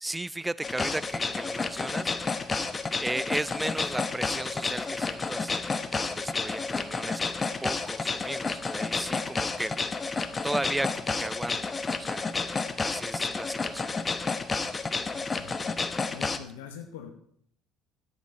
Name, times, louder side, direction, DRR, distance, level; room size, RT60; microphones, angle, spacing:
voice 1, 0.0-2.1 3.0-5.7 6.0-9.7 10.4-12.3 12.8-14.0, right 1 dB, 10° right, 19 dB, 0.4 m, -35 dB
sound 1, 0.6-16.4, left 4 dB, 25° left, 0.9 m, -31 dB
voice 2, 15.1-15.7 16.1-17.1, left 8 dB, 80° left, 4 dB, 0.9 m, -44 dB
11.5 x 8.9 x 4.2 m, 0.67 s
hypercardioid pair, 60°, 0 cm